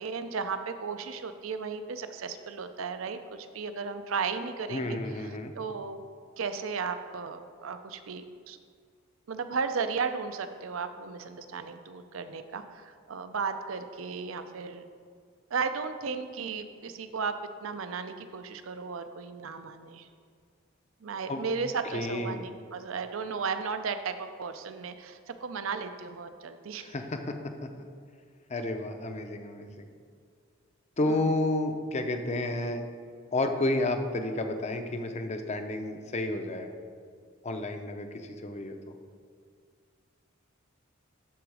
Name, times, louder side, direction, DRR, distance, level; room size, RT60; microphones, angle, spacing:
voice 1, 0.0-6.0 6.4-8.6 9.3-14.8 15.5-20.1 21.0-26.9 31.1-31.3, right 5 dB, 75° right, 9 dB, 0.5 m, -35 dB
voice 2, 4.7-5.5 21.3-21.4 21.9-22.4 26.8-27.9 28.5-29.9 31.0-32.9 33.3-36.7 37.4-38.9, left 2 dB, 35° left, 6 dB, 0.6 m, -31 dB
12.0 x 3.9 x 4.8 m, 2.1 s
head